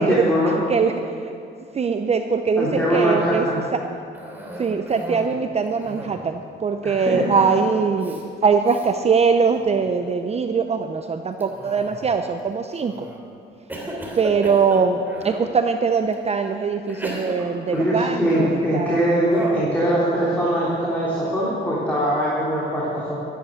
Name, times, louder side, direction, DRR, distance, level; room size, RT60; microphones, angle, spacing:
voice 1, 0.0-0.5 2.6-3.7 6.8-7.3 17.7-23.2, equal, 10° left, -8 dB, 3.4 m, -22 dB
voice 2, 0.7-1.3 1.7-3.5 3.7-3.8 4.6-13.1 14.1-19.2, right 5 dB, 30° right, 7 dB, 0.6 m, -22 dB
Cough, 4.1-5.3 5.7-6.3 7.4-7.7 8.0-8.2 8.7-8.9 9.4-9.9 11.4-12.2 12.8-13.2 13.7-15.5 16.1-16.2 16.9-18.7 19.3-19.7, right 1 dB, 10° right, 3.1 m, -34 dB
13.5 x 10.0 x 6.5 m, 2.5 s
cardioid pair, 90°, 20 cm